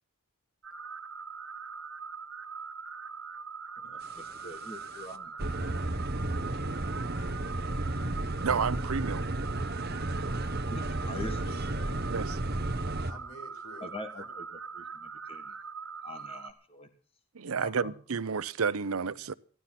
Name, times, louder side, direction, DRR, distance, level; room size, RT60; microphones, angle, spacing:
sound 1, 0.6-16.5, right 5 dB, 65° right, 1.6 m, -42 dB
voice 1, 3.8-5.7 10.7-12.0 13.8-14.4 14.7-15.5 16.0-16.9 17.5-17.9 18.9-19.0, left 1 dB, 25° left, 1.6 m, -44 dB
sound 2, 4.2-4.5 4.9-5.0 5.4-13.1, right 2 dB, 45° right, 1.2 m, -33 dB
voice 2, 6.5-7.2 10.9-11.4 13.1-14.4, left 1 dB, 85° left, 5.3 m, -52 dB
voice 3, 8.4-9.2 12.1-12.4 17.3-19.3, right 5 dB, 85° right, 0.7 m, -30 dB
15.5 x 12.0 x 5.9 m
head